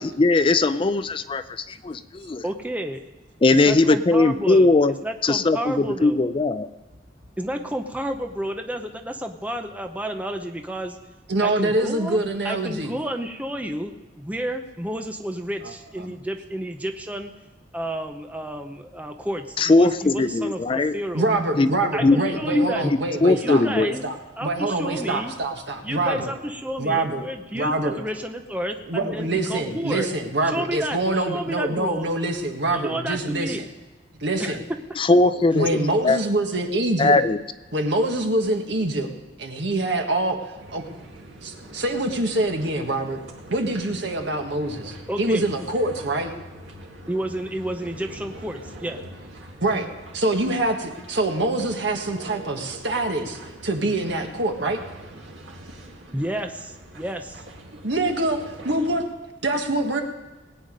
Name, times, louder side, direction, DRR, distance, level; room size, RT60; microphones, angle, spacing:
voice 1, 0.0-2.4 3.4-4.9 5.2-6.7 19.6-20.9 21.6-21.7 22.0-22.2 22.5-23.9 35.0-35.8 36.0-36.2 37.0-37.4, left 2 dB, 30° left, 13 dB, 0.4 m, -19 dB
voice 2, 2.4-3.0 3.5-4.8 5.0-6.2 7.4-11.0 11.4-17.3 17.7-21.3 21.9-22.8 23.3-24.1 24.4-25.3 25.8-30.1 30.4-32.1 32.7-33.6 34.4-34.6 45.1-45.5 47.1-49.0 56.1-57.4, right 1 dB, 10° right, 5 dB, 0.7 m, -31 dB
voice 3, 11.3-12.9 15.6-15.7 16.0-16.2 21.1-24.1 24.4-26.3 26.8-27.2 27.5-28.0 28.9-33.7 34.2-34.6 35.5-37.2 37.7-39.1 39.4-40.8 41.4-43.2 43.5-46.3 49.6-49.9 50.1-54.8 57.8-59.1 59.4-60.0, right 2 dB, 65° right, 3 dB, 1.7 m, -25 dB
sound 1, 40.6-59.1, right 1 dB, 85° right, 2.0 m, -43 dB
19.5 x 9.0 x 5.2 m, 1.2 s
head